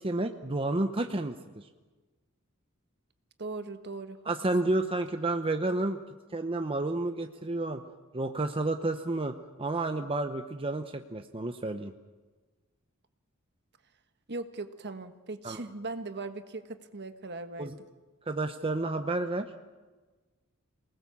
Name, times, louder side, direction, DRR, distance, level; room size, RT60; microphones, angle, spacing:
voice 1, 0.0-1.6 4.3-6.0 6.3-7.8 8.1-11.9 15.4-15.6 17.6-17.7 18.3-19.7, right 2 dB, 25° right, 6 dB, 0.8 m, -31 dB
voice 2, 3.4-4.2 4.6-5.0 14.3-17.7, right 3 dB, 55° right, 8 dB, 1.5 m, -39 dB
28.0 x 19.5 x 7.3 m, 1.3 s
head